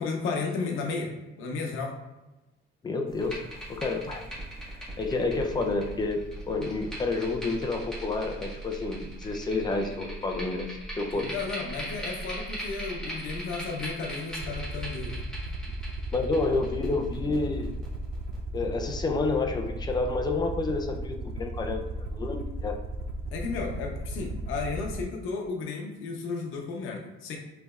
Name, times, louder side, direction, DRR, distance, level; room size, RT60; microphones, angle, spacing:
voice 1, 0.0-2.0 11.1-15.6 23.3-27.4, left 4 dB, 75° left, 1 dB, 0.8 m, -34 dB
voice 2, 2.8-4.2 5.0-11.3 16.1-17.7 18.5-21.8 22.1-22.8, left 3 dB, 20° left, 4 dB, 0.4 m, -29 dB
sound 1, 3.1-18.4, right 1 dB, 5° left, 1.5 m, -39 dB
Aircraft, 14.4-25.0, right 1 dB, 50° right, 0.5 m, -36 dB
5.1 x 3.3 x 2.3 m, 1.0 s
cardioid pair, 140°, 21 cm